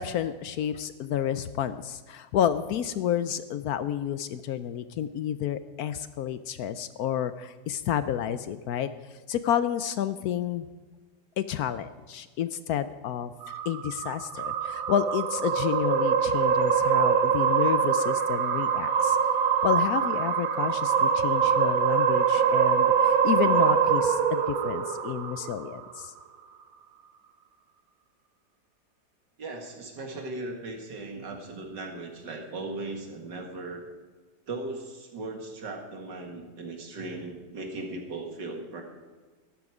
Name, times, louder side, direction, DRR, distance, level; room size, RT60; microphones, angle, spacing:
voice 1, 0.0-8.9 9.3-10.7 11.4-13.3 13.7-19.2 19.6-26.1, left 10 dB, 70° left, 12 dB, 1.0 m, -30 dB
sound 1, 13.4-25.9, right 7 dB, 60° right, 1.3 m, -24 dB
voice 2, 29.4-33.8 34.5-38.8, right 2 dB, 80° right, 2 dB, 2.5 m, -38 dB
13.0 x 12.5 x 4.9 m, 1.4 s
omnidirectional pair, 1.9 m